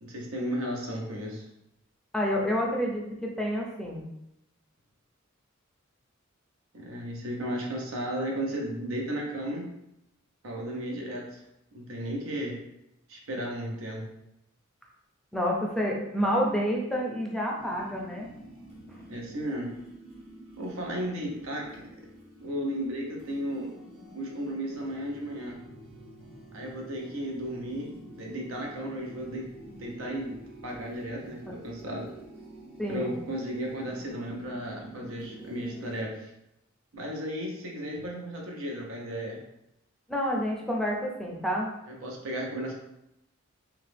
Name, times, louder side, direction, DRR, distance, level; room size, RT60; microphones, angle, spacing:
voice 1, 0.0-1.5 6.7-9.7 10.4-11.4 11.7-12.6 13.1-14.1 19.1-19.7 20.6-21.9 22.4-23.7 24.1-25.6 26.5-32.1 32.9-36.3 36.9-39.4 41.9-42.7, equal, 85° right, -1 dB, 0.7 m, -34 dB
voice 2, 2.1-4.0 15.3-18.3 18.9-19.0 31.5-31.6 32.8-33.1 40.1-41.7, equal, ahead, -2 dB, 0.5 m, -29 dB
sound 1, 17.6-36.0, right 1 dB, 25° right, 0.7 m, -48 dB
2.9 x 2.3 x 3.3 m, 0.84 s
head